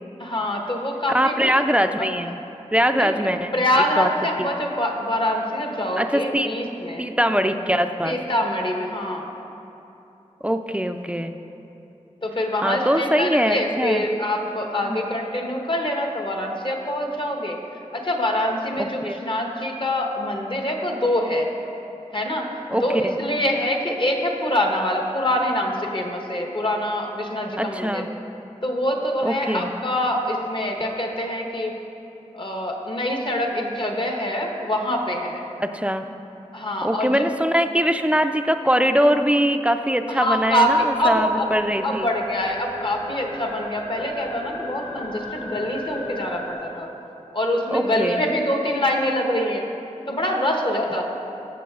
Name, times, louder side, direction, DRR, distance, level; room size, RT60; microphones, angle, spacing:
voice 1, 0.2-1.6 2.0-2.1 2.9-3.1 3.5-7.0 8.0-9.3 12.2-17.6 17.9-21.5 22.1-28.0 28.6-31.7 32.3-35.4 36.5-37.2 40.1-41.5 41.8-46.9 47.3-49.6 50.1-51.0, left 1 dB, 40° left, 2 dB, 1.0 m, -25 dB
voice 2, 1.1-2.4 2.7-4.1 4.4-4.5 6.0-6.5 7.0-8.2 10.4-11.3 12.6-14.0 14.8-15.0 18.8-19.2 22.7-23.2 27.6-28.1 29.2-29.7 35.6-36.0 36.8-42.1 47.7-48.2, equal, 10° right, 7 dB, 0.4 m, -22 dB
sound 1, 40.3-46.5, left 1 dB, 75° left, 1.7 m, -37 dB
14.5 x 7.2 x 2.4 m, 2.9 s
wide cardioid pair, 60°, 12 cm